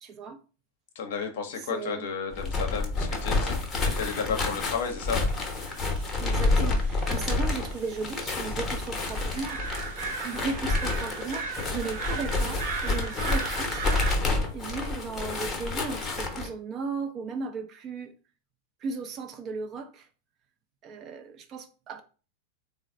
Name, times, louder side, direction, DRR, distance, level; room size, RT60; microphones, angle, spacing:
voice 1, 0.0-0.4 1.6-2.1 6.2-9.6 10.2-13.9 14.5-18.1 18.8-20.1 20.8-22.0, right 4 dB, 30° right, 0.5 m, -36 dB
voice 2, 1.0-5.2, left 6 dB, 55° left, 0.7 m, -33 dB
sound 1, 2.3-16.5, left 3 dB, 20° left, 0.8 m, -29 dB
sound 2, 3.9-14.2, right 4 dB, 50° right, 0.9 m, -38 dB
3.9 x 2.0 x 3.6 m
figure-of-eight pair, 90°, 0 cm